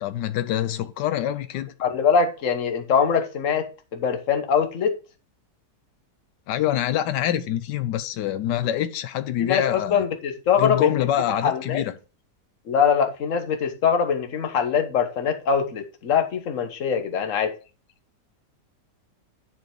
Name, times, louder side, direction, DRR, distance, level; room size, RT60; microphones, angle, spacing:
voice 1, 0.0-1.7 6.5-10.0 10.6-11.9, left 11 dB, 90° left, 1.3 m, -25 dB
voice 2, 1.8-4.9 9.4-11.1 11.4-11.8 12.7-17.6, left 7 dB, 50° left, 1.4 m, -23 dB
9.8 x 4.7 x 4.5 m
omnidirectional pair, 1.8 m